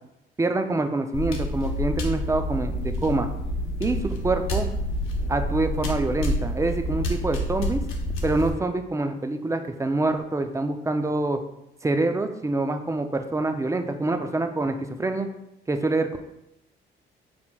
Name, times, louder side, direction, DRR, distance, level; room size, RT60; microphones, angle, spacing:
voice 1, 0.4-3.3 3.8-4.7 5.3-7.8 8.2-11.4 11.8-15.3 15.7-16.2, right 2 dB, 15° right, 7 dB, 0.4 m, -26 dB
sound 1, 1.1-8.5, equal, 90° left, 0.7 m, -28 dB
4.3 x 4.0 x 2.3 m, 0.85 s
cardioid pair, 90°, 20 cm